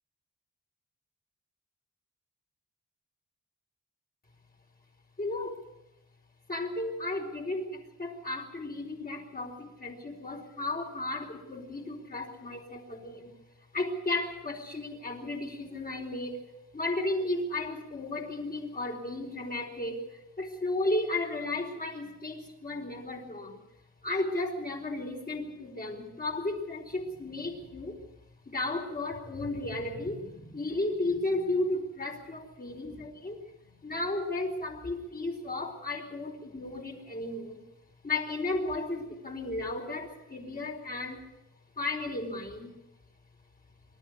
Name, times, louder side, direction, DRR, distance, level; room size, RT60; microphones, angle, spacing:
voice 1, 5.2-5.6 6.5-13.3 13.7-16.4 16.7-23.6 24.0-28.0 28.5-33.4 33.8-37.6 38.0-41.2 41.8-42.7, left 2 dB, 30° left, 2 dB, 4.5 m, -34 dB
26.0 x 13.5 x 8.2 m, 0.94 s
wide cardioid pair, 160°, 31 cm